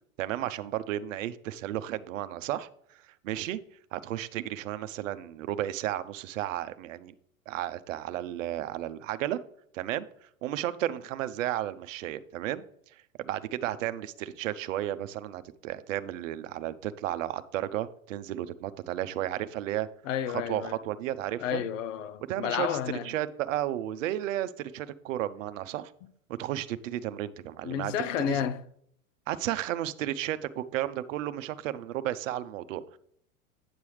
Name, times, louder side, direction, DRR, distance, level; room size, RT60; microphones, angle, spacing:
voice 1, 0.2-2.7 3.2-3.6 3.9-7.1 7.5-9.4 9.7-10.1 10.4-12.6 12.9-19.9 20.5-21.6 22.3-22.8 23.0-25.9 26.4-27.9 28.3-28.4 29.3-33.0, right 13 dB, 65° right, 0.7 m, -33 dB
voice 2, 20.0-20.8 21.4-23.1 27.6-28.6, left 9 dB, 65° left, 0.8 m, -31 dB
9.5 x 6.9 x 3.2 m
hypercardioid pair, 95°, 41 cm